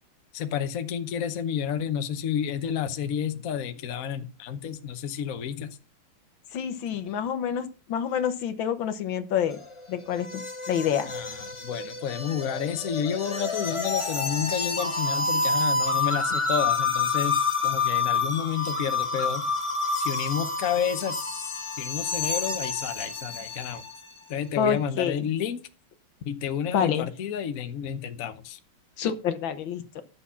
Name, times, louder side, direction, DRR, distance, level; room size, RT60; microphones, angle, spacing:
voice 1, 0.3-5.7 11.1-19.4 19.9-23.8 24.3-25.6 26.2-28.6, left 8 dB, 50° left, 1.1 m, -30 dB
voice 2, 6.5-9.6 9.9-11.1 24.6-25.2 26.7-27.1 29.0-30.0, left 8 dB, 70° left, 1.6 m, -28 dB
sound 1, 9.5-24.1, left 3 dB, 20° left, 0.7 m, -28 dB
11.0 x 7.3 x 5.6 m
omnidirectional pair, 2.4 m